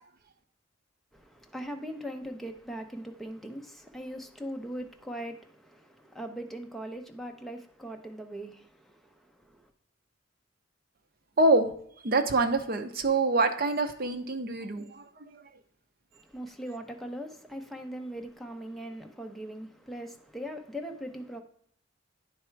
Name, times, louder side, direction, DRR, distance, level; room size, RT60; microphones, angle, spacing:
voice 1, 1.1-9.7 16.1-21.4, equal, ahead, 0.7 m, -40 dB
voice 2, 11.4-11.7 12.0-15.5, right 2 dB, 55° right, 0.7 m, -26 dB
10.0 x 3.4 x 4.5 m
head